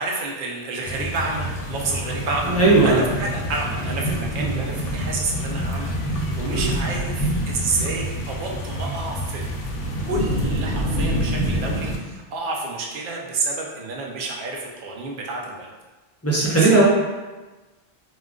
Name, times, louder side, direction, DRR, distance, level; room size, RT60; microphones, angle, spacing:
voice 1, 0.0-2.6 2.8-9.5 10.0-15.7 16.6-16.7, right 3 dB, 60° right, -1 dB, 0.7 m, -29 dB
sound 1, 0.8-12.0, equal, 65° left, 0.7 m, -27 dB
voice 2, 2.4-3.1 4.4-4.6 6.5-6.7 16.2-16.8, right 2 dB, 20° left, -8 dB, 0.5 m, -17 dB
2.2 x 2.2 x 3.6 m, 1.2 s
omnidirectional pair, 1.1 m